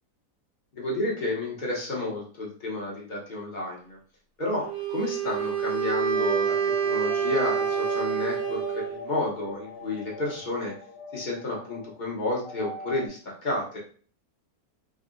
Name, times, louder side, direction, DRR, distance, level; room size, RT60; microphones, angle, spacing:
voice 1, 0.7-4.0 4.4-10.7 11.1-13.8, left 2 dB, 40° left, -3 dB, 0.7 m, -31 dB
Wind instrument woodwind instrument, 4.6-9.0, right 7 dB, 65° right, 0.5 m, -27 dB
sound 1, 6.1-13.1, left 2 dB, 75° left, 1.2 m, -40 dB
3.6 x 2.1 x 2.4 m, 0.43 s
omnidirectional pair, 1.7 m